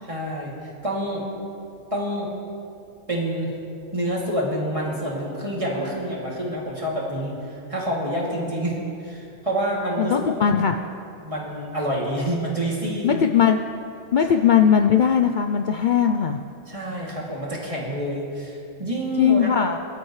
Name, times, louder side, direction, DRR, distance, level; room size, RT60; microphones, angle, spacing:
voice 1, 0.1-0.5 0.8-1.3 1.9-2.3 3.1-3.5 3.9-10.3 11.2-13.3 16.7-19.5, right 1 dB, 25° right, -4 dB, 2.7 m, -27 dB
voice 2, 10.0-10.7 13.0-13.6 14.1-16.4 19.2-19.8, left 7 dB, 75° left, 6 dB, 0.4 m, -19 dB
22.5 x 12.5 x 3.2 m, 2.5 s
omnidirectional pair, 1.4 m